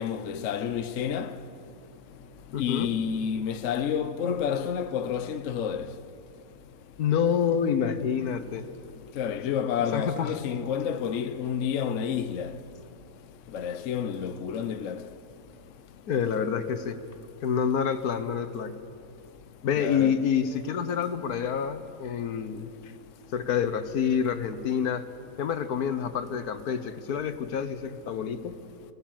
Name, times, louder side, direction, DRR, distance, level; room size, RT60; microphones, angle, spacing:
voice 1, 0.0-1.6 2.1-2.2 2.5-6.0 9.1-12.7 13.5-15.1 19.8-20.2, left 8 dB, 60° left, 1.0 m, -30 dB
voice 2, 2.5-2.9 7.0-8.7 9.9-10.3 16.1-17.0 17.4-18.7 19.6-22.9 23.3-25.1 25.4-28.6, left 7 dB, 80° left, 1.5 m, -27 dB
20.0 x 18.0 x 7.4 m
omnidirectional pair, 1.6 m